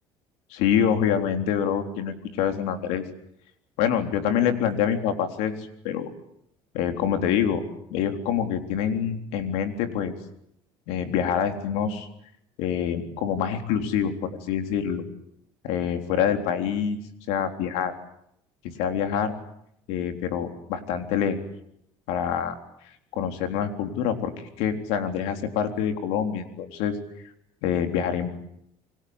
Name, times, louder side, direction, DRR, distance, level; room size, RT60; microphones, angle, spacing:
voice 1, 0.5-3.0 3.8-5.5 5.8-6.1 6.7-7.6 7.9-10.1 10.9-12.1 12.6-15.0 15.6-17.0 17.3-17.9 18.6-19.3 19.9-21.4 22.1-22.5 23.1-27.0 27.6-28.5, left 8 dB, 85° left, 6 dB, 3.8 m, -26 dB
27.5 x 24.0 x 8.0 m, 0.76 s
cardioid pair, 110°, 11 cm